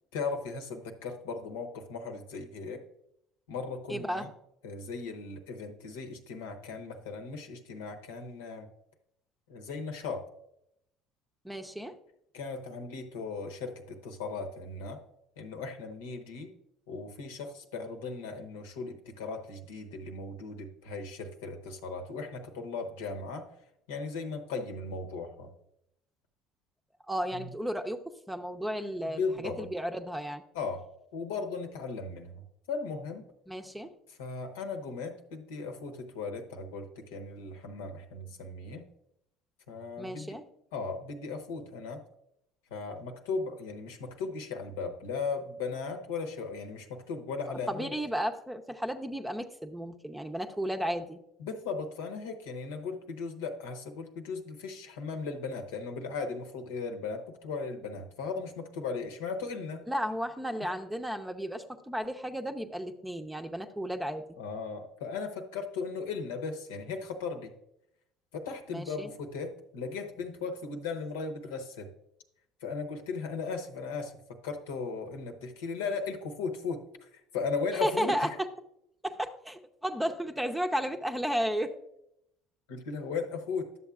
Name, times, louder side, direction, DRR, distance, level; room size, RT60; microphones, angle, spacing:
voice 1, 0.1-2.8 3.5-4.3 4.6-8.7 9.5-10.2 12.3-15.0 15.4-16.5 16.9-23.5 23.9-25.5 27.3-27.5 29.1-29.7 30.5-30.8 31.1-32.4 32.7-33.2 34.1-38.9 39.7-40.3 40.7-42.0 42.7-47.9 51.4-59.8 60.6-60.7 64.4-67.5 68.3-71.9 72.6-78.3 82.7-83.7, left 4 dB, 90° left, 5 dB, 0.9 m, -37 dB
voice 2, 3.9-4.3 11.4-12.0 27.1-28.0 28.3-30.4 33.5-33.9 40.0-40.4 47.7-51.2 59.9-64.2 68.7-69.1 77.8-78.5 79.0-81.7, equal, 5° right, 6 dB, 0.6 m, -33 dB
11.0 x 7.0 x 2.4 m, 0.78 s
supercardioid pair, 85°, 0 cm